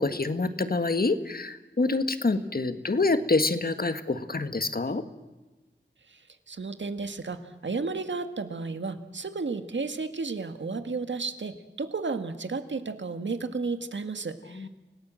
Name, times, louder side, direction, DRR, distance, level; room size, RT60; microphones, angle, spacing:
voice 1, 0.0-5.0 14.5-14.7, left 3 dB, 50° left, 10 dB, 1.7 m, -26 dB
voice 2, 6.5-14.7, right 4 dB, 75° right, 9 dB, 1.8 m, -33 dB
29.5 x 18.5 x 7.7 m, 1.1 s
wide cardioid pair, 70°, 19 cm